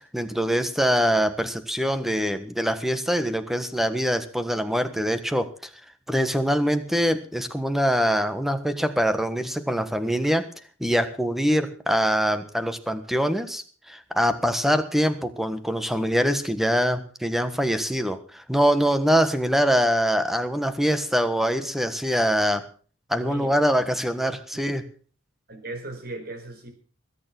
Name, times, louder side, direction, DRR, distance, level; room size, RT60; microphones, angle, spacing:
voice 1, 0.1-5.7 6.1-10.5 10.8-22.6 23.1-24.8, equal, ahead, 1.4 m, -24 dB
voice 2, 23.2-23.8 25.5-26.7, right 2 dB, 50° right, 4.8 m, -38 dB
21.0 x 9.4 x 6.0 m
head